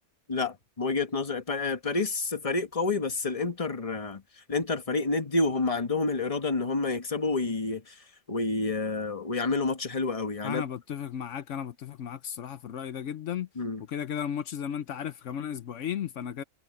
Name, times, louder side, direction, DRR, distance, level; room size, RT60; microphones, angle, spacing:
voice 1, 0.3-4.2 4.5-7.9 8.3-10.6 13.6-13.8, left 3 dB, 30° left, 1.4 m, -29 dB
voice 2, 10.4-13.5 13.9-16.4, left 9 dB, 75° left, 1.1 m, -34 dB
omnidirectional pair, 1.3 m